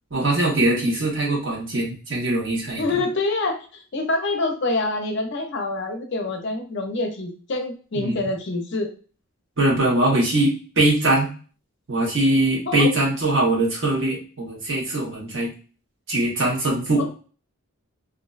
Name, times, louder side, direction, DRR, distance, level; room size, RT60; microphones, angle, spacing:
voice 1, 0.1-3.0 7.9-8.2 9.6-11.3 11.9-15.5 16.1-17.1, right 1 dB, 60° right, -3 dB, 1.0 m, -22 dB
voice 2, 2.8-3.6 3.9-8.9 12.7-12.9 17.0-17.1, left 2 dB, 55° left, 4 dB, 0.5 m, -26 dB
2.5 x 2.1 x 2.4 m, 0.38 s
head